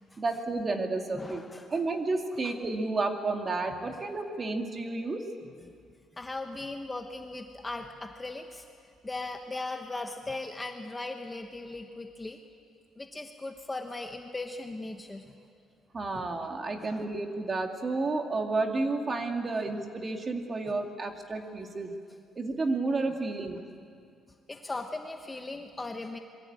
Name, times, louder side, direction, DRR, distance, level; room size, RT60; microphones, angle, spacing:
voice 1, 0.2-1.4 1.7-5.2 15.9-21.9 22.4-23.6, right 3 dB, 25° right, 4 dB, 2.2 m, -31 dB
voice 2, 1.1-1.8 2.4-2.5 6.1-8.6 9.0-12.4 13.0-15.3 16.1-16.3 16.8-17.1 20.7-20.8 24.5-26.2, left 2 dB, 15° left, 4 dB, 1.1 m, -38 dB
26.5 x 22.5 x 8.8 m, 2.3 s
cardioid pair, 165°, 0 cm